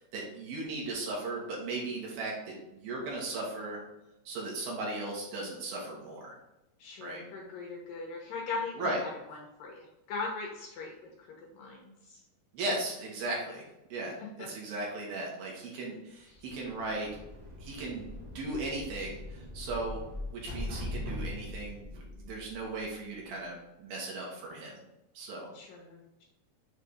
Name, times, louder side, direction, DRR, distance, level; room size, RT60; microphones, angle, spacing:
voice 1, 0.1-3.8 4.3-6.2 7.0-7.2 8.8-9.0 12.5-13.6 13.9-14.2 14.5-17.1 17.6-18.1 18.3-20.0 20.3-24.7 25.1-25.5, right 2 dB, 70° right, -2 dB, 2.9 m, -37 dB
voice 2, 6.8-8.9 9.3-11.3 11.5-12.2 14.2-14.5 16.3-16.4 25.5-26.2, left 4 dB, 70° left, -1 dB, 2.3 m, -40 dB
sound 1, 16.3-23.1, left 1 dB, 50° right, 1.4 m, -41 dB
6.9 x 3.3 x 5.0 m, 0.93 s
omnidirectional pair, 4.8 m